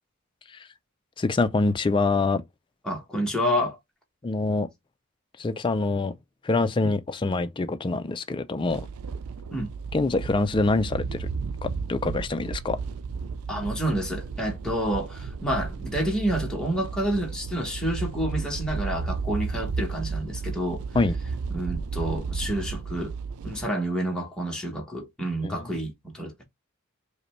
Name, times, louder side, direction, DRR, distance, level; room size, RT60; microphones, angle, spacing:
voice 1, 1.2-2.4 4.2-4.7 5.4-6.1 6.4-8.9 9.9-11.3 11.6-12.8 20.9-21.2 25.4-25.7, left 3 dB, 20° left, 0.3 m, -25 dB
voice 2, 2.8-3.8 6.8-6.9 9.5-9.7 13.5-20.8 21.5-23.1 23.4-26.4, equal, 5° left, 1.0 m, -29 dB
sound 1, 8.6-23.7, right 5 dB, 80° right, 0.4 m, -33 dB
5.0 x 2.2 x 3.0 m
head